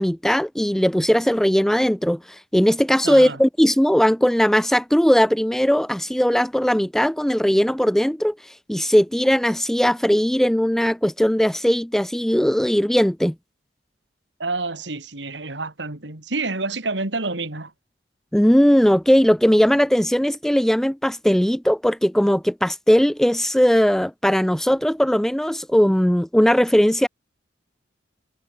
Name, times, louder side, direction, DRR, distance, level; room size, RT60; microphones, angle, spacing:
voice 1, 0.0-2.2 2.5-8.3 8.7-13.3 18.3-27.1, equal, ahead, 0.4 m, -18 dB
voice 2, 3.0-3.4 14.4-17.7, right 3 dB, 85° right, 3.0 m, -28 dB
head